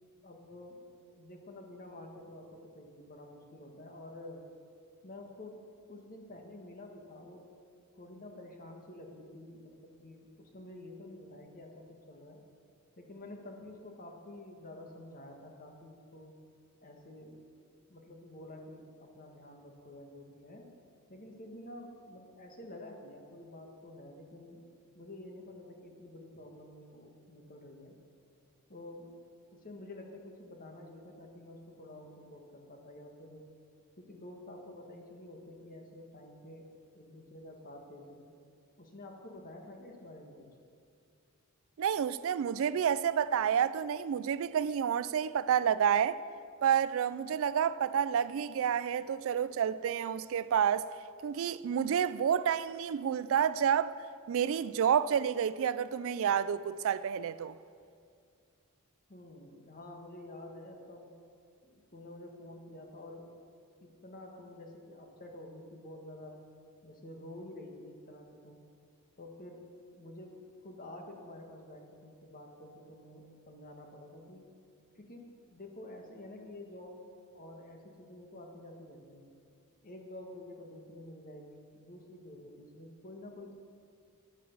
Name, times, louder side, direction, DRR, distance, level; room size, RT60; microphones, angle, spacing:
voice 1, 0.2-4.5 5.0-7.5 7.9-12.4 13.0-16.4 16.8-17.5 17.9-20.7 21.1-24.6 24.9-27.9 28.7-29.1 29.5-33.5 34.0-38.3 38.8-40.5 59.1-61.1 61.6-63.3 63.8-66.4 66.8-68.6 69.2-74.5 75.0-77.0 77.3-79.3 79.8-83.6, left 1 dB, 40° left, 1.6 m, -49 dB
voice 2, 41.8-46.2 46.6-50.9 51.2-53.9 54.3-57.6, right 8 dB, 65° right, 0.3 m, -29 dB
10.5 x 9.3 x 7.2 m
head